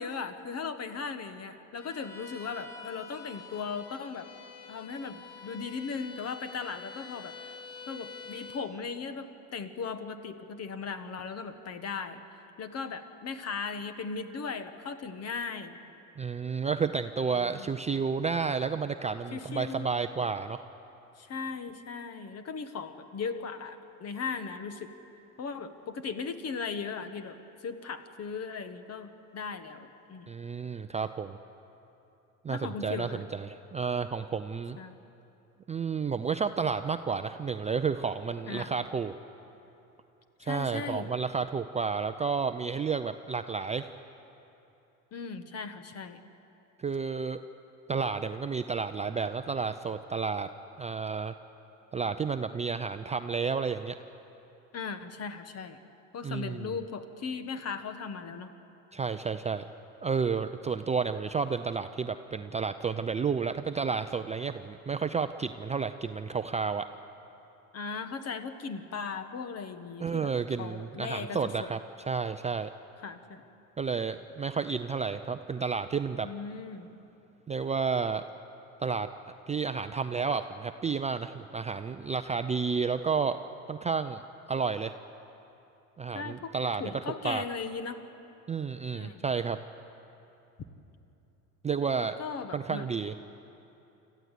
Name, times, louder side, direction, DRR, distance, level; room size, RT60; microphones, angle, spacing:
voice 1, 0.0-4.3 4.7-7.3 7.9-12.2 12.6-15.8 17.4-17.7 19.3-19.9 21.2-24.9 25.4-27.4 27.6-30.3 32.5-33.2 34.8-34.9 38.5-38.7 40.4-41.1 45.1-46.2 54.7-55.8 56.1-58.5 67.7-71.7 73.0-73.4 76.2-76.9 86.1-86.5 86.8-88.0 88.9-89.2 92.0-92.9, left 5 dB, 35° left, 10 dB, 1.5 m, -38 dB
Bowed string instrument, 1.8-8.8, left 5 dB, 70° left, 2.2 m, -47 dB
voice 2, 16.2-20.6 30.3-31.4 32.4-34.8 35.7-39.1 40.4-43.9 46.8-47.4 47.9-50.5 50.8-51.3 51.9-54.0 56.2-56.7 58.9-59.6 60.0-66.9 70.0-71.8 72.1-72.7 73.8-76.3 77.5-78.2 78.8-79.1 79.5-83.4 83.7-84.2 84.5-84.9 86.0-86.8 87.2-87.4 88.5-89.6 91.6-92.1 92.5-93.1, right 5 dB, 15° right, 8 dB, 0.5 m, -31 dB
26.0 x 15.0 x 8.3 m, 2.9 s
supercardioid pair, 100°, 41 cm